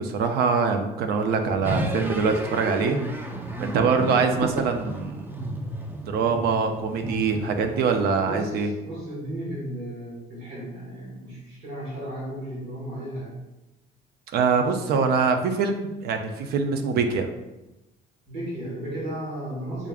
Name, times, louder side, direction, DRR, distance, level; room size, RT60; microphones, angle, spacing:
voice 1, 0.0-3.0 3.6-5.2 6.0-8.7 14.3-17.3, right 5 dB, 70° right, 6 dB, 0.4 m, -24 dB
sound 1, 1.6-8.0, right 1 dB, 10° right, 0.4 m, -32 dB
voice 2, 8.2-13.3 18.3-19.9, right 1 dB, 90° right, -5 dB, 1.5 m, -34 dB
3.6 x 3.4 x 2.3 m, 1.0 s
cardioid pair, 110°, 17 cm